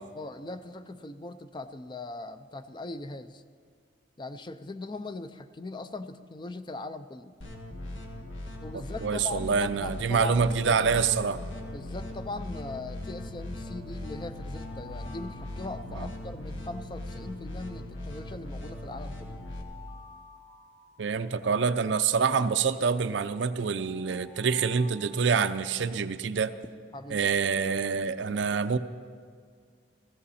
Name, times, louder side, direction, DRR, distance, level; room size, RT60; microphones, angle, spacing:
voice 1, 0.1-3.4 4.2-7.4 8.6-10.8 11.7-19.4 26.9-27.3, left 2 dB, 25° left, 11 dB, 0.4 m, -40 dB
sound 1, 7.4-19.6, left 1 dB, 85° left, 1.6 m, -39 dB
voice 2, 8.7-11.4 15.9-16.1 21.0-26.5 27.1-28.8, right 5 dB, 70° right, 12 dB, 0.5 m, -26 dB
Alarm, 11.0-11.3 13.0-16.8 17.9-21.7 22.8-26.0, left 4 dB, 40° left, 3.4 m, -53 dB
16.5 x 15.0 x 4.2 m, 2.1 s
head